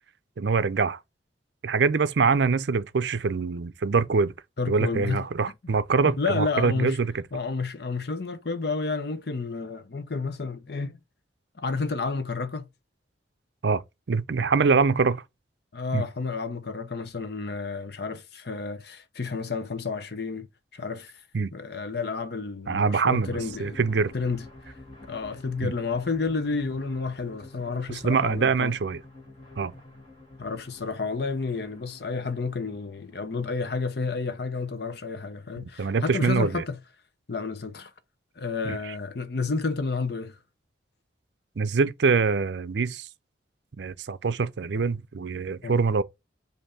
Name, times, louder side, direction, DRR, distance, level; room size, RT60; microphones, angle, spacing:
voice 1, 0.4-1.0 1.6-4.3 4.7-7.1 13.6-13.8 14.1-15.2 15.9-16.0 21.3-21.5 22.7-24.1 25.6-25.7 27.9-29.0 29.6-29.7 35.8-36.6 38.7-38.8 41.6-43.1 43.8-46.0, right 4 dB, 65° right, 0.5 m, -24 dB
voice 2, 4.6-5.2 6.0-7.0 7.3-11.0 11.6-12.7 15.7-20.5 20.7-21.2 21.5-23.8 24.1-24.7 25.1-28.7 30.4-36.8 37.3-37.9 38.4-40.4 45.6-45.8, left 4 dB, 55° left, 0.7 m, -31 dB
sound 1, 23.1-34.2, left 2 dB, 25° left, 2.1 m, -48 dB
7.7 x 2.7 x 4.8 m
head